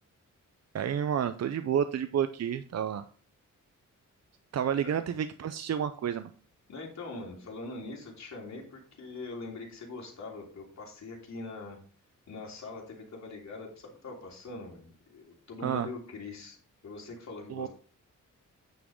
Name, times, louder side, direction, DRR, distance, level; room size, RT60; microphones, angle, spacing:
voice 1, 0.7-3.0 4.5-6.3 15.6-15.9 17.5-17.7, right 8 dB, 55° right, 10 dB, 0.6 m, -30 dB
voice 2, 6.7-11.8 12.3-16.6 16.8-17.7, left 2 dB, 60° left, -1 dB, 3.1 m, -42 dB
9.3 x 6.2 x 3.6 m, 0.40 s
wide cardioid pair, 135°, 31 cm